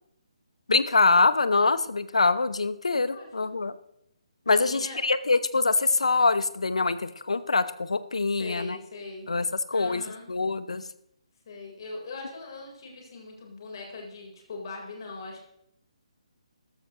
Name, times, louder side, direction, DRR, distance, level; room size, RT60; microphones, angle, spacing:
voice 1, 0.7-3.7 4.5-8.8 9.3-10.0 10.3-10.8, left 3 dB, 70° left, 14 dB, 0.8 m, -24 dB
voice 2, 3.1-3.5 4.4-5.0 8.3-9.3 9.7-10.2 11.5-15.4, left 3 dB, 45° left, 0 dB, 3.9 m, -41 dB
14.0 x 13.0 x 3.0 m, 0.75 s
figure-of-eight pair, 140°, 3 cm